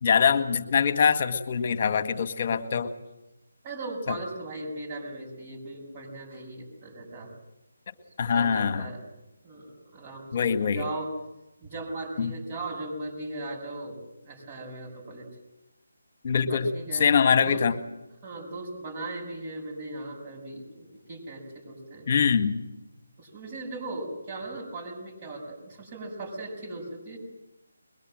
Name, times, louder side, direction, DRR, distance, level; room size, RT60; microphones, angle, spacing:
voice 1, 0.0-2.9 4.1-4.2 8.2-8.9 10.3-10.9 12.2-12.3 16.2-17.8 22.1-22.6, left 6 dB, 35° left, 10 dB, 1.8 m, -23 dB
voice 2, 3.6-7.3 8.3-9.0 9.4-11.1 11.6-14.0 14.2-15.3 16.4-17.1 17.4-17.6 18.2-22.1 23.2-27.2, right 2 dB, 25° right, 2 dB, 7.1 m, -38 dB
23.0 x 22.0 x 7.9 m, 0.95 s
figure-of-eight pair, 165°, 0 cm